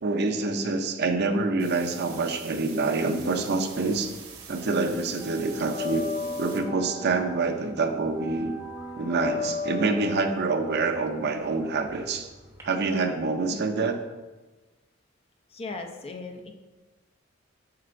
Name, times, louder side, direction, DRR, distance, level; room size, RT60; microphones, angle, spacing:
voice 1, 0.0-4.1 4.5-6.1 6.4-8.5 9.0-12.3 12.6-14.0, right 3 dB, 55° right, 6 dB, 0.6 m, -26 dB
sound 1, 1.6-6.6, right 6 dB, 85° right, 1.0 m, -45 dB
sound 2, 3.3-4.5 4.7-12.6, left 3 dB, 15° right, 1.0 m, -36 dB
voice 2, 15.5-16.5, left 3 dB, 30° left, 4 dB, 0.6 m, -37 dB
7.6 x 5.6 x 2.5 m, 1.2 s
head